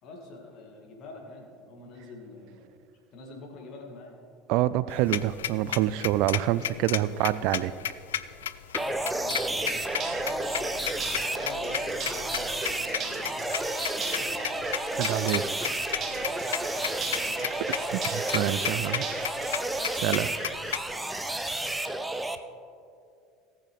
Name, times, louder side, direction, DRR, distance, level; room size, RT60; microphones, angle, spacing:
voice 1, 0.0-2.8 3.1-4.2 8.7-10.7 11.2-13.6 13.9-14.6 16.5-17.6 20.9-21.3, left 2 dB, 45° left, 0 dB, 2.4 m, -46 dB
voice 2, 4.5-7.7 15.0-15.4 17.1-17.2 17.9-19.1 20.0-20.3, right 14 dB, 55° right, 16 dB, 0.3 m, -26 dB
sound 1, 4.9-20.9, left 11 dB, 70° left, 0.3 m, -33 dB
sound 2, 8.7-22.4, right 2 dB, 10° right, 0.7 m, -31 dB
sound 3, 9.5-19.5, right 5 dB, 40° right, 1.3 m, -39 dB
18.5 x 7.7 x 3.3 m, 2.5 s
figure-of-eight pair, 70°, 0 cm